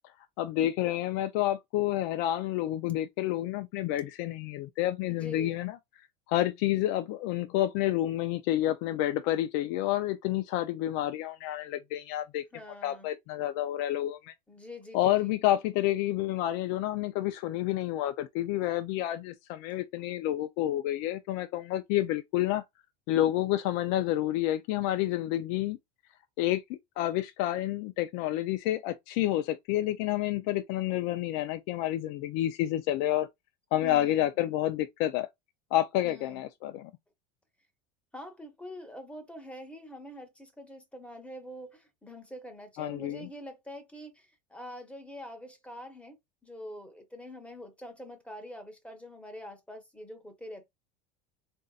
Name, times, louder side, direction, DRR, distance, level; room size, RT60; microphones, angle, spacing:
voice 1, 0.4-5.8 6.3-12.4 12.8-14.3 14.9-22.6 23.1-25.8 26.4-33.3 33.7-35.3 35.7-36.9 42.8-43.3, left 14 dB, 60° left, 0.5 m, -29 dB
voice 2, 5.1-5.7 12.5-13.1 14.5-15.4 19.7-19.8 33.8-34.3 36.0-36.5 38.1-46.2 46.4-50.7, left 1 dB, 5° left, 1.0 m, -45 dB
3.9 x 2.6 x 2.4 m
supercardioid pair, 110°, 20 cm